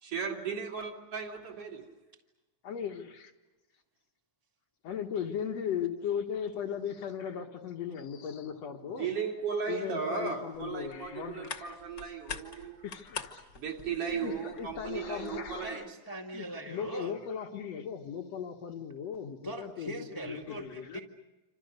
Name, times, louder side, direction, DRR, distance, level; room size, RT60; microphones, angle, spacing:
voice 1, 0.0-1.9 8.8-12.8 13.6-15.8, right 6 dB, 50° right, 2 dB, 3.8 m, -36 dB
voice 2, 2.6-3.3 4.8-9.1 9.7-11.8 12.8-13.4 14.2-15.8 16.3-21.0, left 8 dB, 60° left, 5 dB, 2.5 m, -37 dB
sound 1, 10.5-15.7, left 6 dB, 40° left, 2.0 m, -46 dB
voice 3, 15.6-17.1 19.4-21.0, right 1 dB, 10° left, 2 dB, 1.5 m, -40 dB
28.5 x 26.5 x 6.6 m, 1.1 s
omnidirectional pair, 3.5 m